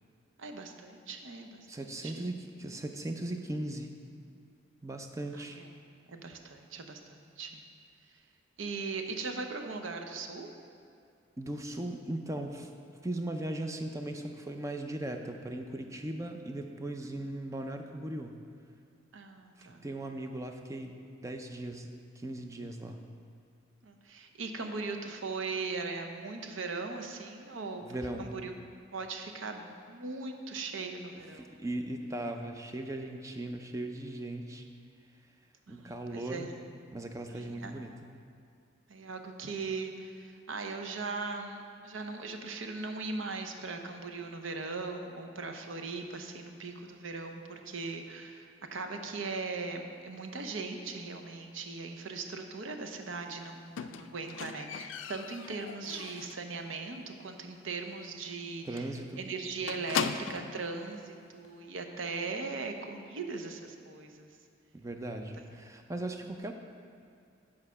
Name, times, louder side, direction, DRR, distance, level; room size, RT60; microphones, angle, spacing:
voice 1, 0.4-2.3 5.3-5.7 6.1-7.6 8.6-10.5 19.1-19.9 23.8-27.8 28.2-28.5 28.9-31.6 35.7-36.5 37.3-37.7 38.9-58.9 59.2-64.3, right 4 dB, 80° right, 5 dB, 0.7 m, -39 dB
voice 2, 1.7-3.9 4.8-5.6 11.4-12.7 13.0-18.4 19.6-23.0 27.8-28.3 31.3-34.6 35.7-36.5 36.9-37.9 58.6-59.2 64.7-66.5, right 1 dB, 15° right, 4 dB, 0.4 m, -38 dB
Squeak, 53.8-56.5 56.9-57.3 57.5-57.6 58.0-58.1 58.4-58.5 58.8-60.6 61.4-61.5, left 7 dB, 75° left, 0.3 m, -38 dB
8.4 x 4.8 x 5.5 m, 2.4 s
head